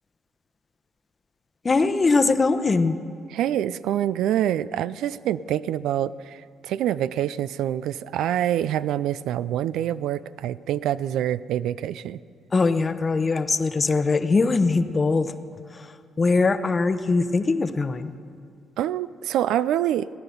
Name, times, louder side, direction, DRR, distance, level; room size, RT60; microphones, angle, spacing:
voice 1, 1.6-3.0 12.5-15.3 16.2-18.1, left 3 dB, 30° left, 10 dB, 0.8 m, -21 dB
voice 2, 3.3-12.2 18.8-20.1, right 11 dB, 85° right, 17 dB, 0.3 m, -26 dB
16.5 x 9.9 x 7.0 m, 2.4 s
cardioid pair, 90°, 0 cm